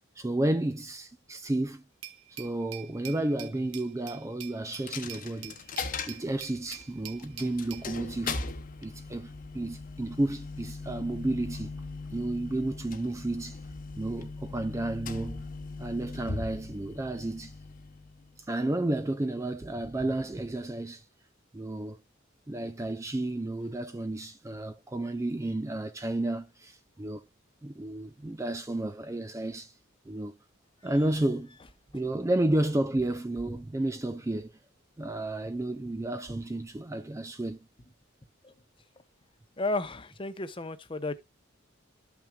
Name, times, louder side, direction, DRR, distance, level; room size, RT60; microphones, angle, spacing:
voice 1, 0.2-1.8 2.3-5.6 6.1-8.4 8.8-11.7 12.1-13.6 14.0-15.4 15.8-17.6 18.4-21.1 21.5-22.0 22.5-27.2 27.6-29.7 30.1-30.3 30.8-31.6 31.9-34.5 35.0-37.6, right 1 dB, 15° right, 0.3 m, -32 dB
Glass, 2.0-7.9, right 11 dB, 65° right, 1.2 m, -46 dB
Coin (dropping), 4.7-18.5, left 4 dB, 45° left, 0.9 m, -40 dB
voice 2, 39.6-41.2, left 2 dB, 25° left, 0.7 m, -33 dB
13.5 x 5.9 x 2.3 m
head